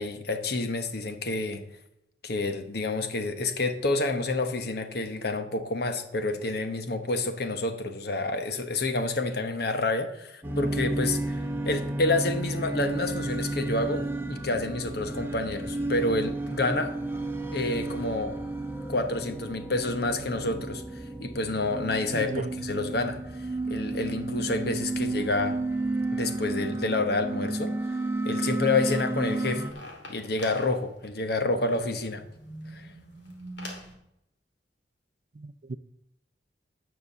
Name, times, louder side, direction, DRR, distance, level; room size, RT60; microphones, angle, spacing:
voice 1, 0.0-1.6 2.2-16.9 17.5-18.4 18.9-25.6 26.1-28.0 28.2-29.8 30.1-32.2 32.7-32.9, left 2 dB, 60° left, 1.1 m, -29 dB
sound 1, 10.4-29.7, right 2 dB, 15° right, 1.0 m, -32 dB
voice 2, 22.1-22.6 35.3-35.8, right 3 dB, 45° right, 0.5 m, -36 dB
sound 2, 28.8-33.9, equal, 75° left, 2.7 m, -45 dB
9.8 x 6.2 x 6.8 m
head